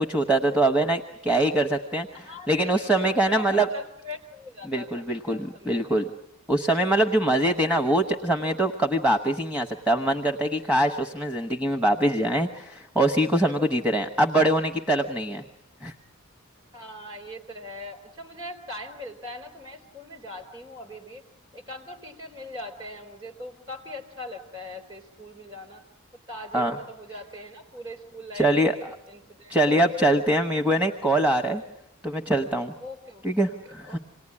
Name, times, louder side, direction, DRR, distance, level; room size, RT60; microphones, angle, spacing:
voice 1, 0.0-2.1 2.5-3.7 4.7-6.1 6.5-15.4 15.8-15.9 26.5-26.7 28.3-28.9 29.5-31.6 32.0-32.7 33.2-34.0, right 1 dB, 5° right, 7 dB, 1.0 m, -23 dB
voice 2, 2.1-6.0 16.7-21.2 21.5-25.8 26.3-28.8 29.1-29.8 32.8-34.0, left 1 dB, 25° right, 6 dB, 4.0 m, -41 dB
27.5 x 19.0 x 9.8 m, 0.85 s
head